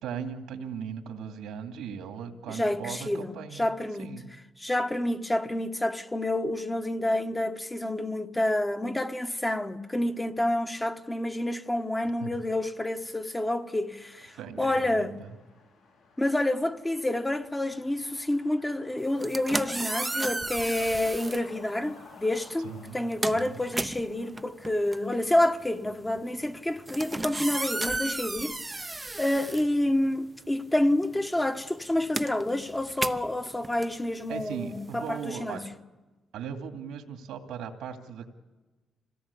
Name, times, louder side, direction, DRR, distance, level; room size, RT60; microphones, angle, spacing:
voice 1, 0.0-3.7 4.0-4.3 12.2-12.4 14.3-15.3 22.6-23.0 23.3-23.6 34.3-35.6 36.3-38.3, right 7 dB, 90° right, 2.5 m, -38 dB
voice 2, 2.5-4.1 4.6-15.2 16.2-28.5 29.2-35.7, left 1 dB, 15° left, 1.2 m, -28 dB
Truck, 9.8-29.8, left 4 dB, 80° left, 7.6 m, -57 dB
sound 1, 19.1-21.5 22.3-22.5 22.9-30.4 30.7-35.3, right 2 dB, 15° right, 0.7 m, -34 dB
26.0 x 17.5 x 8.4 m
cardioid pair, 90°, 0 cm